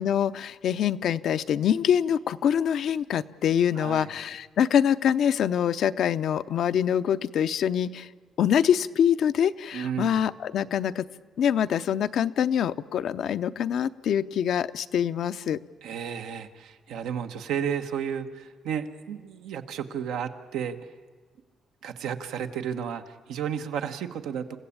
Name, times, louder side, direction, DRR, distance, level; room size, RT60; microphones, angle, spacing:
voice 1, 0.0-8.1 8.4-11.1 11.4-15.6, left 9 dB, 70° left, 12 dB, 0.6 m, -25 dB
voice 2, 3.8-4.1 9.7-10.2 15.8-20.8 21.8-24.6, right 8 dB, 85° right, 6 dB, 1.2 m, -32 dB
28.0 x 15.5 x 8.6 m, 1.5 s
cardioid pair, 90°, 0 cm